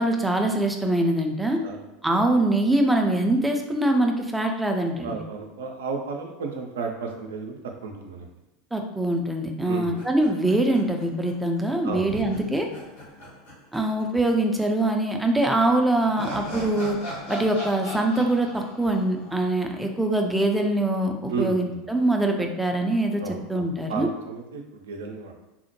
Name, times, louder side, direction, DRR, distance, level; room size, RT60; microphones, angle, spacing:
voice 1, 0.0-1.6 2.0-5.1 8.7-12.7 13.7-17.0 17.3-23.2 23.5-24.1, right 1 dB, 5° right, 3 dB, 0.4 m, -23 dB
voice 2, 5.0-8.3 9.6-10.0 11.8-12.4 21.3-21.8 23.2-25.3, right 4 dB, 65° right, 3 dB, 0.4 m, -33 dB
sound 1, 9.9-11.3 11.6-11.7 12.1-14.3 14.6-14.7 15.7-20.0, equal, 70° left, 1.1 m, -38 dB
3.7 x 2.0 x 2.9 m, 0.98 s
figure-of-eight pair, 75°, 0 cm